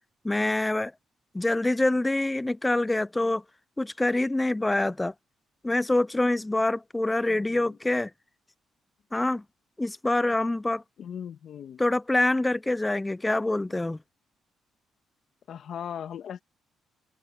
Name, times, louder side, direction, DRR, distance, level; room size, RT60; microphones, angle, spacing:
voice 1, 0.2-0.9 1.3-3.4 3.8-5.1 5.6-8.1 9.1-9.4 9.8-10.8 11.8-14.0, left 2 dB, 15° left, 0.4 m, -25 dB
voice 2, 7.3-7.8 11.0-11.8 15.5-16.4, left 8 dB, 65° left, 1.8 m, -38 dB
open air
cardioid pair, 90°, 0 cm